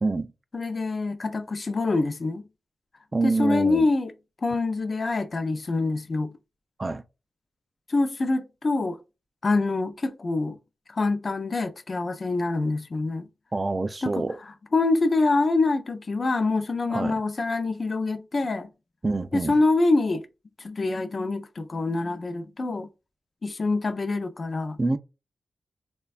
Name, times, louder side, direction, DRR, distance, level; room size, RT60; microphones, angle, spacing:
voice 1, 0.0-0.3 3.1-3.9 6.8-7.0 13.5-14.4 16.9-17.2 19.0-19.5 24.8-25.0, right 3 dB, 35° right, 0.3 m, -26 dB
voice 2, 0.5-2.4 3.2-4.1 4.4-6.3 7.9-9.0 9.4-10.6 10.9-13.3 14.0-14.2 14.7-18.7 19.3-20.2 20.6-22.9 23.4-24.8, left 3 dB, 50° left, 0.4 m, -25 dB
3.2 x 2.2 x 2.4 m
cardioid pair, 65°, 0 cm